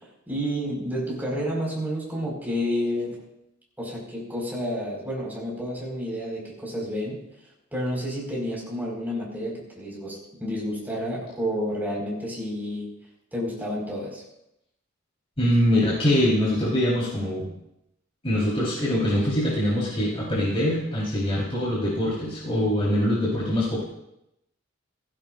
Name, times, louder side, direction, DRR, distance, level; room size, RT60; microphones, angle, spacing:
voice 1, 0.3-3.2 3.8-7.2 7.7-12.9 13.3-14.2, equal, 10° right, -4 dB, 5.2 m, -30 dB
voice 2, 15.4-17.5 18.2-23.8, left 1 dB, 30° left, -8 dB, 4.2 m, -23 dB
16.0 x 16.0 x 2.6 m, 0.84 s
head